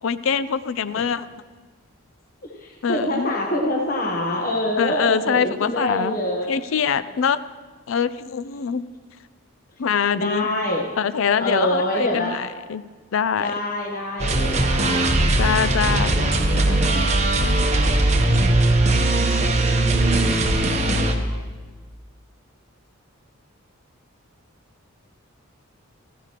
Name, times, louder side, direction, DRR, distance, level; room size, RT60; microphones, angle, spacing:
voice 1, 0.0-1.3 2.8-3.3 4.8-6.2 6.5-7.4 7.9-8.9 9.8-10.5 11.0-12.9 13.1-13.5 15.4-17.0, left 7 dB, 70° left, 15 dB, 0.4 m, -24 dB
voice 2, 2.4-6.5 10.1-10.9 11.4-12.3 13.4-15.2, left 1 dB, 40° left, -1 dB, 1.1 m, -25 dB
sound 1, 14.2-21.1, right 2 dB, 30° right, 0.9 m, -19 dB
15.0 x 14.5 x 3.0 m, 1.4 s
head